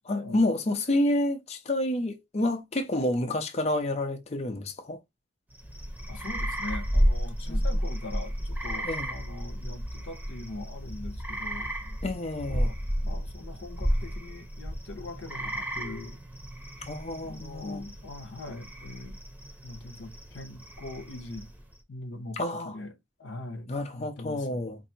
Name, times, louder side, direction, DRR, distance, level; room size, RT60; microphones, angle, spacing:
voice 1, 0.1-5.0 7.5-7.6 8.8-9.1 12.0-12.7 16.8-17.8 22.4-22.7 23.7-24.8, left 1 dB, 35° left, 0.6 m, -29 dB
sound 1, 5.5-21.7, equal, 10° right, 0.8 m, -32 dB
voice 2, 6.1-12.0 12.4-12.8 13.1-16.2 17.2-19.2 19.6-21.5 21.9-24.6, left 2 dB, 70° left, 0.7 m, -42 dB
4.2 x 2.6 x 2.7 m
head